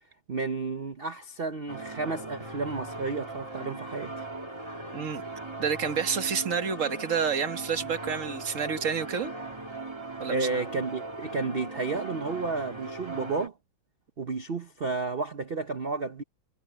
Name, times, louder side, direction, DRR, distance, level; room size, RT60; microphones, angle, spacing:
voice 1, 0.3-4.2 10.3-13.5 14.2-16.2, right 3 dB, 75° right, 0.5 m, -32 dB
sound 1, 1.7-13.5, right 2 dB, 15° right, 1.5 m, -39 dB
voice 2, 5.6-9.3 10.2-10.5, right 6 dB, 40° right, 1.6 m, -29 dB
omnidirectional pair, 2.3 m